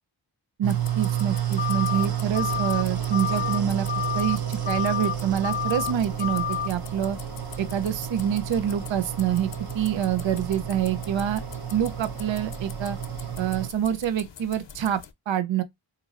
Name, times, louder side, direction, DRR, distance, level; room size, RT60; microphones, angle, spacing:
sound 1, 0.6-13.7, right 10 dB, 50° right, 1.0 m, -31 dB
voice 1, 0.6-3.9 4.1-7.2 7.6-9.5 9.7-11.4 11.7-13.0 13.4-15.0 15.3-15.6, right 9 dB, 70° right, 0.6 m, -26 dB
sound 2, 0.7-15.1, left 8 dB, 65° left, 0.7 m, -45 dB
machinery siren, 1.6-2.1 2.3-2.8 3.1-3.6 3.9-4.4 4.7-5.1 5.4-5.9 6.2-6.7, left 10 dB, 20° left, 0.5 m, -29 dB
3.9 x 2.9 x 2.4 m
wide cardioid pair, 70°, 46 cm